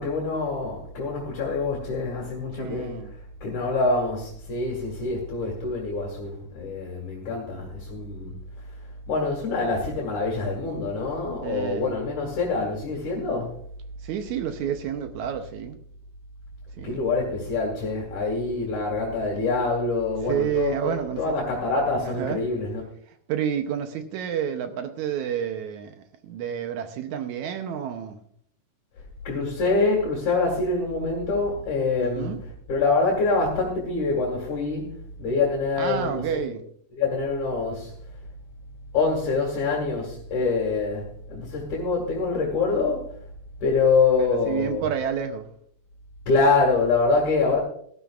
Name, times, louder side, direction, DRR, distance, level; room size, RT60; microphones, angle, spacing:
voice 1, 0.0-2.9 3.4-8.3 9.1-13.5 16.8-22.8 29.3-32.4 32.7-36.4 37.0-37.9 38.9-43.1 43.6-44.9 46.3-47.6, left 3 dB, 65° left, -1 dB, 3.5 m, -25 dB
voice 2, 2.6-3.1 11.4-11.9 14.0-15.8 16.8-17.0 20.3-21.2 22.0-22.4 23.3-28.2 32.0-32.4 35.8-36.6 44.2-45.5, right 9 dB, 75° right, 7 dB, 2.1 m, -29 dB
17.5 x 12.5 x 2.4 m, 0.64 s
omnidirectional pair, 3.6 m